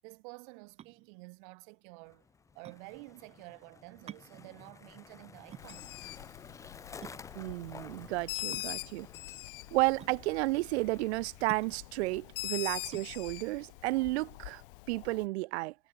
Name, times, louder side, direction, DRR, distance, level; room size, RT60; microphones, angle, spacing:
voice 1, 0.0-2.2 2.5-6.3, right 34 dB, 40° right, 3.0 m, -51 dB
sound 1, 0.8-15.0, right 10 dB, 15° right, 1.6 m, -52 dB
Skateboard, 2.1-14.8, left 5 dB, 10° left, 1.3 m, -54 dB
Bird, 5.6-15.2, left 21 dB, 50° left, 0.7 m, -43 dB
voice 2, 7.4-9.1 9.7-14.6 14.9-15.7, right 21 dB, 60° right, 0.5 m, -32 dB
supercardioid pair, 180°, 37 cm